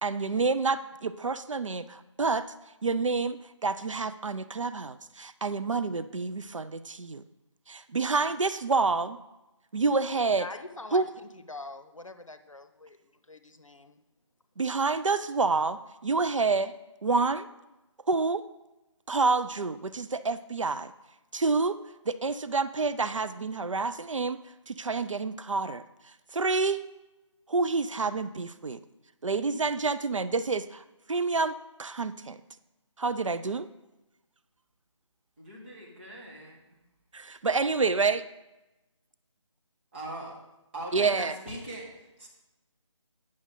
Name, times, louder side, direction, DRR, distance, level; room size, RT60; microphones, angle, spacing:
voice 1, 0.0-2.5 2.8-7.2 7.7-9.2 9.7-10.5 10.9-11.2 14.6-16.7 17.0-17.5 18.1-18.4 19.1-20.9 21.3-21.8 22.1-25.8 26.3-26.8 27.5-28.8 29.2-32.4 33.0-33.7 37.1-38.2 40.9-41.4, right 4 dB, 75° right, 13 dB, 0.4 m, -28 dB
voice 2, 10.3-11.0 11.5-13.0 13.3-14.0, left 3 dB, 85° left, 10 dB, 0.7 m, -43 dB
voice 3, 35.4-36.6 39.9-40.3 40.7-41.9 42.2-42.3, right 1 dB, 25° right, -6 dB, 2.1 m, -40 dB
9.5 x 6.3 x 3.8 m, 1.0 s
figure-of-eight pair, 155°, 16 cm